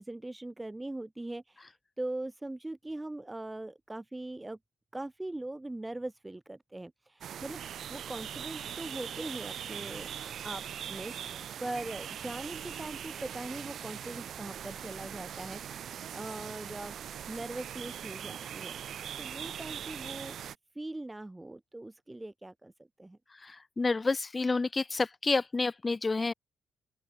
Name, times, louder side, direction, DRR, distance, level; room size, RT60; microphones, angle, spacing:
voice 1, 0.0-4.6 4.9-10.6 10.9-17.0 17.3-18.8 19.2-23.2, right 2 dB, 15° right, 1.7 m, -41 dB
sound 1, 7.2-20.6, right 9 dB, 65° right, 0.4 m, -41 dB
sound 2, 8.4-8.9 9.3-11.7 12.2-12.8 13.1-15.6 16.6-16.7, left 9 dB, 65° left, 3.7 m, -63 dB
voice 2, 23.4-26.3, left 3 dB, 25° left, 0.3 m, -29 dB
open air
cardioid pair, 90°, 0 cm